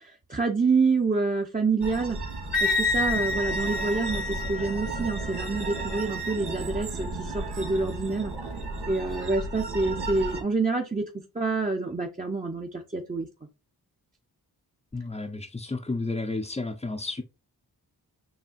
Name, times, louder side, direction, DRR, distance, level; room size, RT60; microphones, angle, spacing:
voice 1, 0.0-2.2 2.6-8.3 8.9-13.3, right 3 dB, 20° right, 0.8 m, -27 dB
sound 1, 1.8-10.4, right 3 dB, 80° right, 1.5 m, -34 dB
Wind instrument woodwind instrument, 2.5-6.4, left 3 dB, 55° left, 1.1 m, -30 dB
voice 2, 14.9-17.2, left 3 dB, 15° left, 0.7 m, -32 dB
7.2 x 2.7 x 2.5 m
cardioid pair, 45°, 40 cm